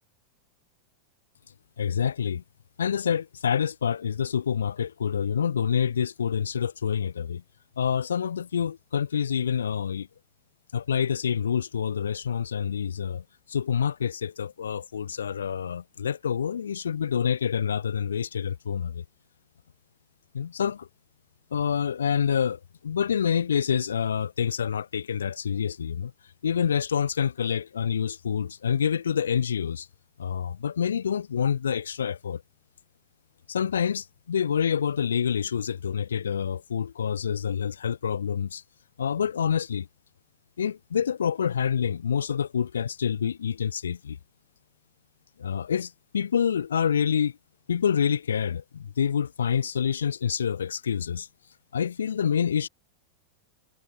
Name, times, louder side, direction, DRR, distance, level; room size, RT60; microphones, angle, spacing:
voice 1, 1.8-2.4 2.8-7.4 7.8-10.1 10.7-13.2 13.5-19.0 20.3-20.9 21.5-26.1 26.4-29.9 30.2-32.4 33.5-38.6 39.0-39.9 40.6-44.2 45.4-47.3 47.7-51.3 51.7-52.7, left 7 dB, 70° left, 4.1 m, -27 dB
figure-of-eight pair, 90°, 0 cm